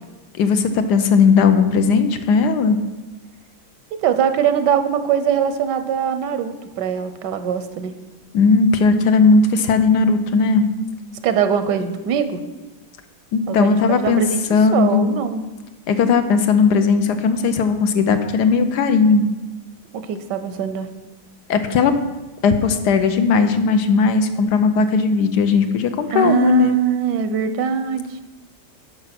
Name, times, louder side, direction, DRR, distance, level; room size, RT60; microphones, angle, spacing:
voice 1, 0.4-2.8 8.3-10.7 13.3-14.2 14.5-15.2 15.9-19.3 21.5-21.9 22.4-26.8, left 5 dB, 75° left, 8 dB, 1.3 m, -17 dB
voice 2, 3.9-7.9 11.2-12.4 13.5-14.4 14.7-15.4 19.9-20.9 26.1-28.2, right 8 dB, 85° right, 10 dB, 1.3 m, -21 dB
8.8 x 6.0 x 5.9 m, 1.1 s
omnidirectional pair, 1.8 m